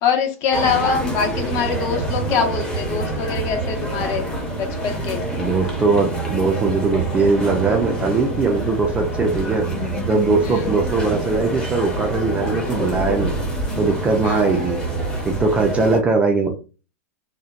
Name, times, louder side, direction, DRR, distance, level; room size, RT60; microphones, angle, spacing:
voice 1, 0.0-4.2 4.6-5.2 10.4-10.7 14.2-14.5, left 6 dB, 40° left, 4 dB, 0.7 m, -23 dB
sound 1, 0.5-16.0, right 1 dB, 10° left, 0.7 m, -26 dB
voice 2, 5.4-9.7 10.1-13.3 13.8-14.8 15.2-16.5, right 4 dB, 15° right, 3 dB, 0.3 m, -20 dB
2.8 x 2.1 x 2.4 m, 0.34 s
supercardioid pair, 140°, 9 cm